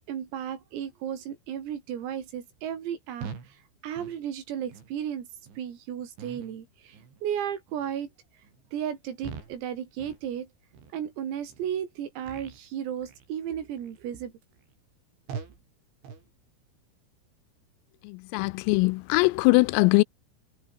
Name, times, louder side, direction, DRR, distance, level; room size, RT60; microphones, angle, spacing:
voice 1, 0.1-3.3 3.8-5.3 5.6-6.7 7.2-8.1 8.7-10.5 10.9-14.3, right 9 dB, 85° right, 6.2 m, -34 dB
sound 1, 3.2-3.5 3.9-4.2 4.7-4.9 5.5-5.6 6.2-6.6 6.9-7.2 7.7-7.9 8.4-8.6 9.2-9.6 10.0-10.3 10.7-10.9 11.5-11.7 12.2-12.6 13.0-13.3 13.8-14.0 14.5-14.6 15.3-15.6 16.0-16.3, right 6 dB, 65° right, 7.6 m, -42 dB
voice 2, 18.1-20.0, left 25 dB, 85° left, 3.2 m, -21 dB
omnidirectional pair, 5.9 m